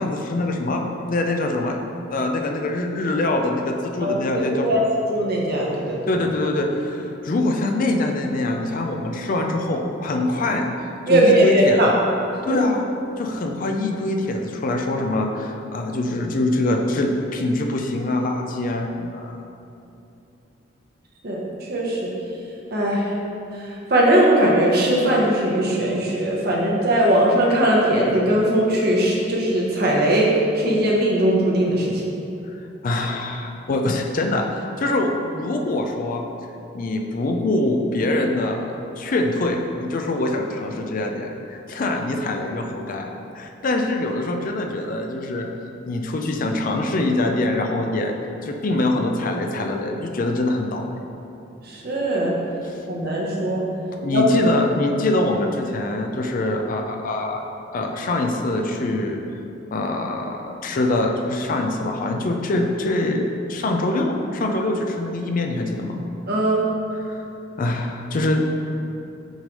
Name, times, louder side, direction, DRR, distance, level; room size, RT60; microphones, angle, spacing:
voice 1, 0.0-1.8 2.1-4.9 6.1-11.9 12.4-12.9 13.2-19.3 32.8-34.4 34.8-36.2 36.7-43.1 43.4-45.5 45.9-48.1 48.4-50.9 52.6-52.8 54.0-57.4 57.7-59.2 59.7-66.0 66.9-67.2 67.6-68.4, left 2 dB, 45° left, 3 dB, 0.4 m, -24 dB
voice 2, 5.1-6.0 11.1-11.9 12.5-12.6 21.2-21.4 21.7-22.1 22.7-23.0 23.9-30.3 30.6-31.9 51.7-52.3 52.9-53.6 54.1-54.2 66.3-66.6, right 1 dB, 55° right, -3 dB, 1.1 m, -19 dB
6.3 x 3.2 x 5.3 m, 2.8 s
head